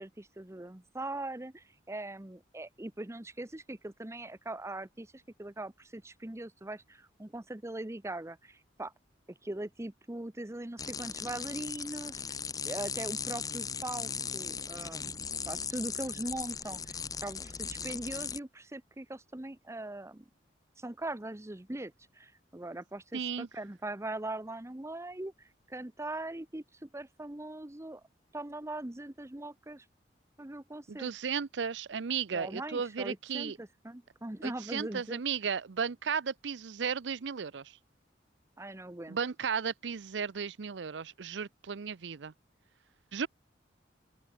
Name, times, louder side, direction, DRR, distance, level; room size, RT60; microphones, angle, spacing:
voice 1, 0.0-8.9 9.4-12.4 12.6-20.2 20.8-28.0 28.3-29.8 30.4-31.1 32.3-35.2 38.6-39.2, right 2 dB, 15° right, 0.9 m, -41 dB
sound 1, 10.8-18.4, left 6 dB, 20° left, 0.6 m, -38 dB
voice 2, 23.1-23.5 30.9-33.6 34.4-37.8 39.1-42.3 43.1-43.3, right 6 dB, 75° right, 0.6 m, -35 dB
open air
head